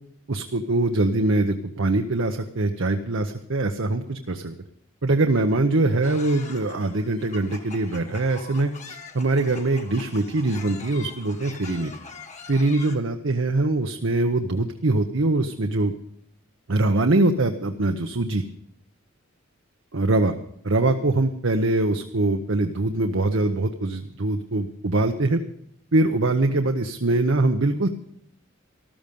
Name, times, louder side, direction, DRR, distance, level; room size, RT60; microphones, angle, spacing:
voice 1, 0.3-4.5 5.0-11.9 12.5-15.9 16.7-18.4 19.9-20.3 20.6-25.4 25.9-27.9, right 2 dB, 65° right, 6 dB, 0.8 m, -23 dB
sound 1, 6.0-13.0, left 5 dB, 35° left, 1.4 m, -43 dB
14.0 x 13.0 x 5.3 m, 0.72 s
head